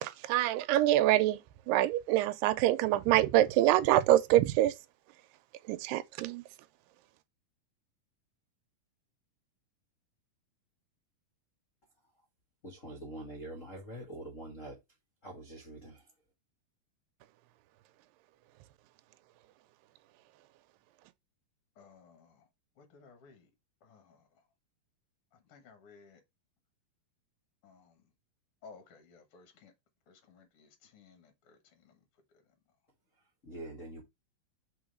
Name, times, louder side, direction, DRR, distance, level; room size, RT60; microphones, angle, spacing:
voice 1, 0.0-1.4 1.7-4.7 5.7-6.4, right 14 dB, 80° right, 2.2 m, -25 dB
voice 2, 12.6-14.8 15.2-16.0 33.4-34.0, right 1 dB, 90° left, 0.6 m, -44 dB
voice 3, 21.8-22.3 22.8-23.4 23.8-24.2 25.5-26.2 27.6-27.9 28.6-29.7 30.1-31.6, left 4 dB, 65° left, 1.4 m, -57 dB
5.0 x 3.9 x 4.9 m
omnidirectional pair, 4.2 m